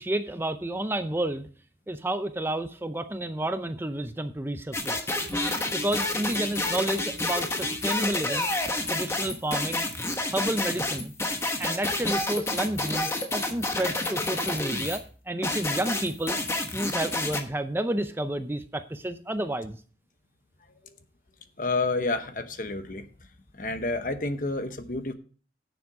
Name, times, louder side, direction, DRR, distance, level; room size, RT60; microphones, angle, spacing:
voice 1, 0.0-1.5 1.9-5.1 5.7-8.5 8.9-9.9 10.3-11.1 11.6-16.4 16.7-19.8, right 1 dB, 15° right, 9 dB, 0.5 m, -30 dB
sound 1, 4.7-15.0 15.4-17.4, left 2 dB, 15° left, 1.1 m, -29 dB
voice 2, 21.6-23.1 23.5-25.1, left 3 dB, 50° left, 9 dB, 1.0 m, -29 dB
10.0 x 7.2 x 4.8 m, 0.41 s
head